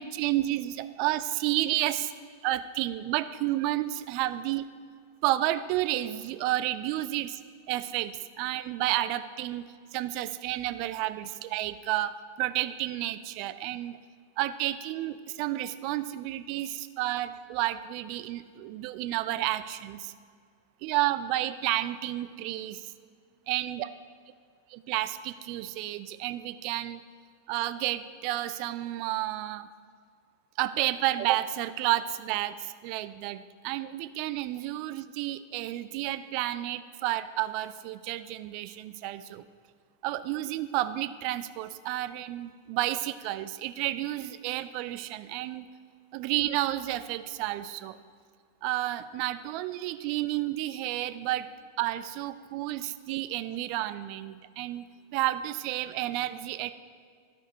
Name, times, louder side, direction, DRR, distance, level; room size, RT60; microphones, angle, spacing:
voice 1, 0.0-2.1 2.4-4.7 5.2-7.4 7.7-9.7 9.9-14.0 14.4-20.1 20.8-22.9 23.5-23.9 24.9-27.0 27.5-29.7 30.6-39.4 40.0-45.7 46.1-48.0 48.6-51.5 51.8-54.9 55.1-56.7, right 15 dB, 45° right, 12 dB, 0.4 m, -31 dB
12.5 x 4.6 x 4.4 m, 2.1 s
figure-of-eight pair, 90°, 0 cm